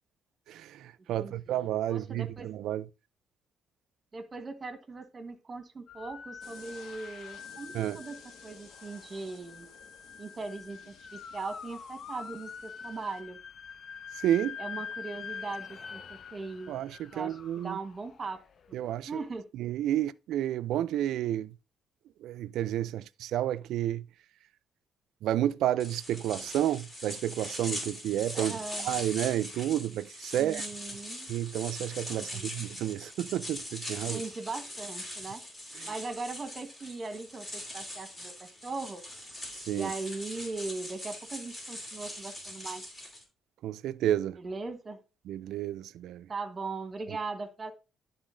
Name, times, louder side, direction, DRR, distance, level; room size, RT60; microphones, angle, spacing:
voice 1, 0.5-2.9 7.7-8.0 14.2-14.6 16.7-17.8 18.7-19.2 19.6-21.5 22.2-24.1 25.2-28.6 28.8-30.7 31.3-34.2 35.8-35.9 39.7-39.9 43.6-44.4 45.3-46.3, right 12 dB, 85° right, 0.3 m, -31 dB
voice 2, 1.2-1.6 1.9-2.5 4.1-8.2 8.4-9.7 10.2-13.4 14.6-16.7 17.1-18.4 19.1-19.4 28.3-28.9 30.4-31.3 32.2-32.5 34.0-35.4 35.9-38.3 38.6-39.0 39.7-42.8 44.4-45.0 46.3-47.7, right 3 dB, 35° right, 1.3 m, -39 dB
sound 1, 5.9-18.9, left 6 dB, 50° left, 0.6 m, -45 dB
sound 2, 6.4-13.2, left 5 dB, 75° left, 1.6 m, -55 dB
sound 3, 25.8-43.2, left 1 dB, 20° left, 2.7 m, -41 dB
11.0 x 3.9 x 3.8 m
cardioid pair, 90°, 0 cm